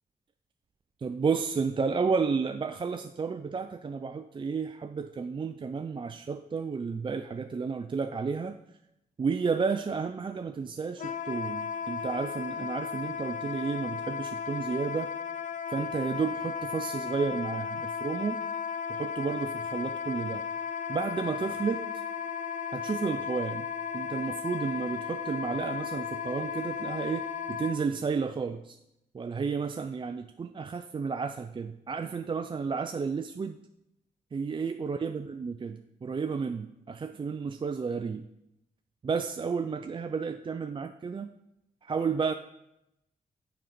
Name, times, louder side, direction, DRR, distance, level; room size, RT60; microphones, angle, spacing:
voice 1, 1.0-8.6 9.2-15.1 15.7-18.4 18.9-20.4 20.9-21.9 22.7-23.7 23.9-28.8 29.1-33.6 34.3-38.3 39.0-41.3 41.8-42.3, right 5 dB, 30° right, 7 dB, 0.4 m, -32 dB
Wind instrument woodwind instrument, 11.0-27.8, left 7 dB, 50° left, 0.6 m, -35 dB
6.5 x 5.2 x 5.9 m, 0.85 s
cardioid pair, 65°, 16 cm